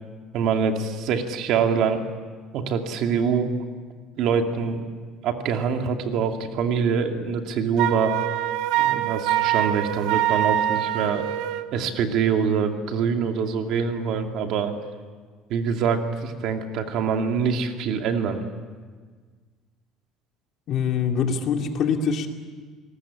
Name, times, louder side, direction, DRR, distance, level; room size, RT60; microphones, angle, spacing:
voice 1, 0.3-2.0 2.5-3.5 4.2-4.8 5.2-8.2 8.8-11.2 11.7-14.7 15.5-18.4, right 6 dB, 55° right, 4 dB, 2.5 m, -24 dB
Wind instrument woodwind instrument, 7.8-11.7, right 13 dB, 85° right, 1.3 m, -24 dB
voice 2, 20.7-22.3, left 6 dB, 40° left, 4 dB, 2.3 m, -24 dB
28.0 x 19.5 x 8.7 m, 1.5 s
cardioid pair, 170°, 0 cm